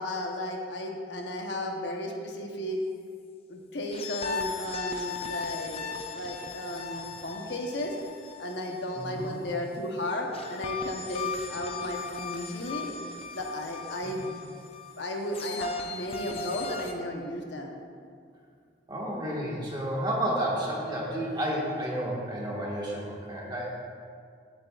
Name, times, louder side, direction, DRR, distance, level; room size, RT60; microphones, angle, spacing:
voice 1, 0.0-2.8 3.5-5.9 6.1-7.9 8.4-13.0 13.3-14.5 15.0-17.8, left 1 dB, 65° left, 1 dB, 1.1 m, -34 dB
sound 1, 3.9-9.5 10.3-16.9, left 5 dB, 30° left, 0.6 m, -38 dB
voice 2, 8.9-9.3 14.0-14.1 18.9-23.8, right 1 dB, 25° right, -4 dB, 1.6 m, -31 dB
14.5 x 7.9 x 2.5 m, 2.2 s
head